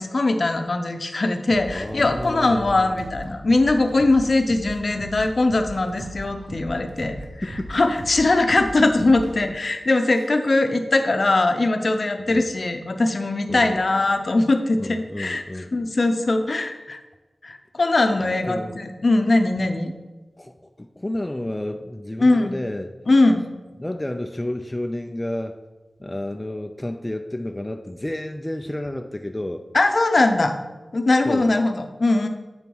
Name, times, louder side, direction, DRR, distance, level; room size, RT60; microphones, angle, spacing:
voice 1, 0.0-7.2 7.7-15.4 15.7-17.0 17.4-19.9 22.2-22.5 23.1-23.4 29.7-30.6 30.9-32.3, left 2 dB, 55° left, 6 dB, 0.7 m, -21 dB
voice 2, 1.5-3.0 7.4-7.8 9.5-9.6 12.3-12.5 13.5-13.8 14.8-15.7 18.2-18.8 20.4-22.9 23.8-25.6 26.0-29.6 31.3-31.5, left 1 dB, 20° left, 5 dB, 0.4 m, -31 dB
sound 1, 1.5-9.3, right 1 dB, 85° right, 0.9 m, -38 dB
7.9 x 4.6 x 5.4 m, 1.2 s
wide cardioid pair, 60°, 0 cm